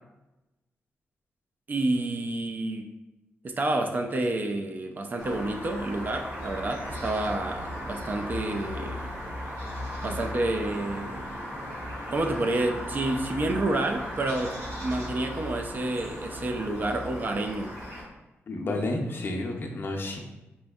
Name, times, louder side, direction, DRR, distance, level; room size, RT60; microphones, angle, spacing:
voice 1, 1.7-2.9 3.4-9.1 10.0-11.2 12.1-17.7, right 2 dB, 40° right, 5 dB, 0.3 m, -29 dB
sound 1, 5.2-18.0, equal, 75° right, 1.5 m, -37 dB
voice 2, 18.5-20.2, left 2 dB, 50° left, 2 dB, 0.5 m, -30 dB
4.2 x 2.6 x 2.3 m, 1.0 s
wide cardioid pair, 110°, 5 cm